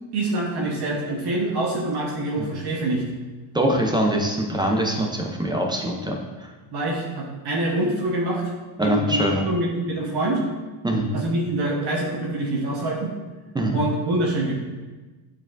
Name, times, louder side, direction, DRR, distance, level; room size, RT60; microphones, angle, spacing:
voice 1, 0.1-3.0 6.7-8.4 8.8-10.4 11.1-13.1 13.7-14.5, right 1 dB, 50° right, -2 dB, 1.1 m, -25 dB
voice 2, 3.5-6.2 8.8-9.5 10.8-11.1 13.5-13.7, right 1 dB, 10° right, 1 dB, 0.5 m, -23 dB
8.3 x 4.6 x 2.5 m, 1.3 s
cardioid pair, 130°, 49 cm